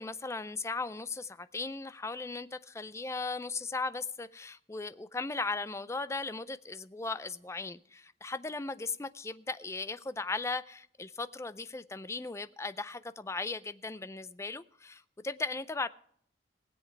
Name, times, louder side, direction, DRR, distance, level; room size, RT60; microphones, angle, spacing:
voice 1, 0.0-15.9, left 3 dB, 15° left, 0.4 m, -37 dB
20.5 x 7.9 x 4.6 m
head